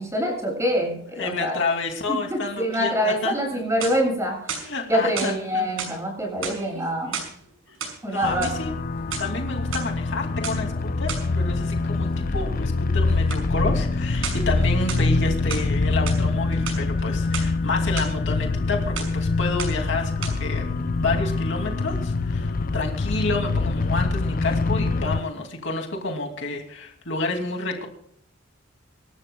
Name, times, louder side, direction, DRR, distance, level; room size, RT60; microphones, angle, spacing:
voice 1, 0.0-1.6 2.1-4.5 4.9-7.2 8.0-8.6, equal, 15° right, 0 dB, 7.6 m, -25 dB
voice 2, 1.2-3.3 4.6-5.7 7.1-7.2 8.0-8.7 9.2-27.9, left 3 dB, 60° left, 3 dB, 2.6 m, -29 dB
sound 1, 3.6-4.2 4.5-5.3 5.8-6.0 6.4-7.3 7.7-8.6 9.0-9.8 10.4-10.6 11.1-11.3 13.3-13.5 14.2-14.5 14.9-15.7 16.1-16.2 16.5-17.5 18.0-18.1 18.5-18.7 19.0-19.2 19.6-19.9 20.2-20.3, right 6 dB, 75° right, 5.9 m, -33 dB
sound 2, 8.2-25.2, left 3 dB, 40° left, 0.5 m, -25 dB
26.5 x 13.0 x 2.3 m, 0.66 s
head